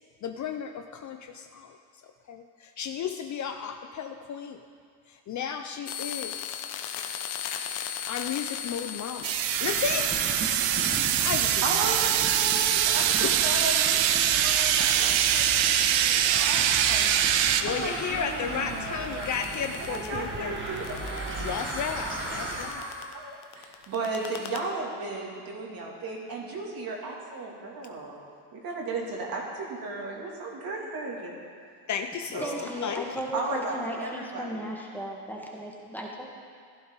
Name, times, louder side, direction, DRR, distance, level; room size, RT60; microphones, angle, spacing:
voice 1, 0.2-1.8 2.0-4.6 5.1-6.6 8.1-9.3 9.6-10.5 11.2-11.8 13.2-13.3 17.6-20.6 21.4-22.9 31.9-32.5 32.8-33.0, left 7 dB, 40° left, 7 dB, 0.6 m, -34 dB
sound 1, 5.9-15.5 15.7-23.1 23.4-24.6, left 9 dB, 80° left, 1.2 m, -40 dB
sound 2, 9.2-22.7, right 2 dB, 25° right, 1.8 m, -36 dB
sound 3, 9.2-17.6, right 10 dB, 75° right, 0.8 m, -24 dB
voice 2, 11.6-17.1 17.7-19.3 19.8-21.6 22.0-28.2 28.5-31.3 32.3-32.7 33.3-34.7, right 3 dB, 45° right, -2 dB, 2.8 m, -35 dB
voice 3, 32.4-36.3, equal, 5° left, -2 dB, 1.7 m, -35 dB
15.5 x 11.5 x 4.0 m, 2.2 s
supercardioid pair, 105°, 47 cm